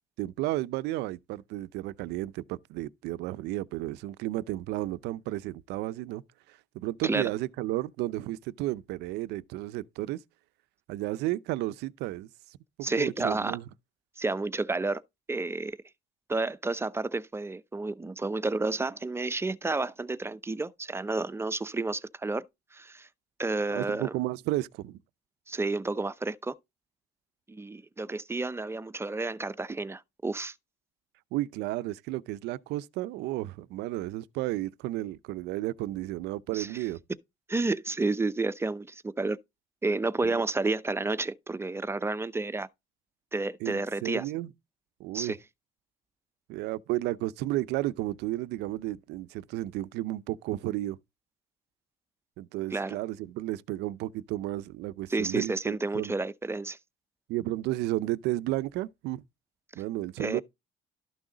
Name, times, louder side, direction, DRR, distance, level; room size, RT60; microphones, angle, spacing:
voice 1, 0.2-6.2 6.5-10.2 10.9-12.3 12.8-13.6 23.7-25.0 31.3-37.0 40.2-40.4 43.6-44.5 45.0-45.3 46.5-51.0 52.4-56.1 57.3-59.2 59.8-60.4, right 16 dB, 90° right, 0.6 m, -33 dB
voice 2, 12.8-13.6 14.2-15.0 15.3-15.8 16.3-22.4 22.7-23.1 23.4-24.1 25.5-26.5 27.5-30.5 36.5-36.7 37.5-39.4 39.8-42.7 43.3-44.3 45.1-45.4 52.7-53.0 55.1-56.8 60.2-60.4, right 3 dB, 15° right, 0.7 m, -30 dB
12.5 x 6.2 x 3.9 m
cardioid pair, 110°, 17 cm